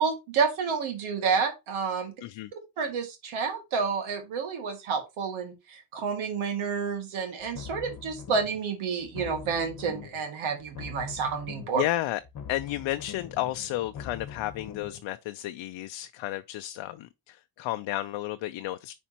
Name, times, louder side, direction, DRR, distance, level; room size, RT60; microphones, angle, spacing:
voice 1, 0.0-2.1 2.8-11.8, right 5 dB, 90° right, 2.2 m, -29 dB
sound 1, 7.4-8.7 9.0-10.3 10.6-11.9 12.2-15.0, left 7 dB, 45° left, 1.2 m, -43 dB
voice 2, 11.7-12.2 12.5-18.9, left 15 dB, 70° left, 0.6 m, -32 dB
10.0 x 4.2 x 2.8 m
cardioid pair, 150°, 47 cm